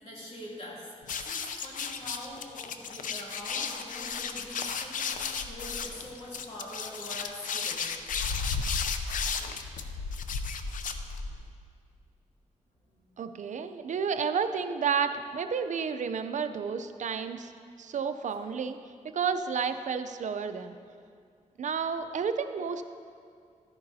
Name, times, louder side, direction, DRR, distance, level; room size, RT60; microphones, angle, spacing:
voice 1, 0.0-5.1 5.5-7.9 12.9-13.0 18.3-18.5 20.6-20.8, left 1 dB, 50° left, -5 dB, 2.7 m, -44 dB
sound 1, 1.0-11.5, left 5 dB, 85° left, 0.5 m, -34 dB
voice 2, 13.2-17.5 17.8-18.8 19.1-20.8 21.6-22.8, right 6 dB, 65° right, 9 dB, 0.5 m, -31 dB
13.5 x 10.5 x 2.7 m, 2.3 s
cardioid pair, 85°, 13 cm